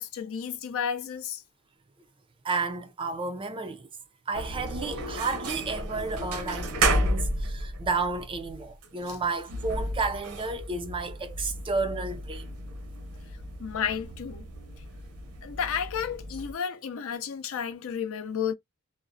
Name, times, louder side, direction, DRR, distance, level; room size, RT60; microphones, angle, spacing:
voice 1, 0.0-1.4 13.6-14.5 15.4-18.5, left 7 dB, 65° left, 0.5 m, -32 dB
voice 2, 2.4-3.9 4.3-12.5, right 3 dB, 25° right, 0.3 m, -32 dB
sound 1, 4.3-16.5, right 1 dB, 75° right, 0.7 m, -33 dB
2.4 x 2.0 x 2.5 m
head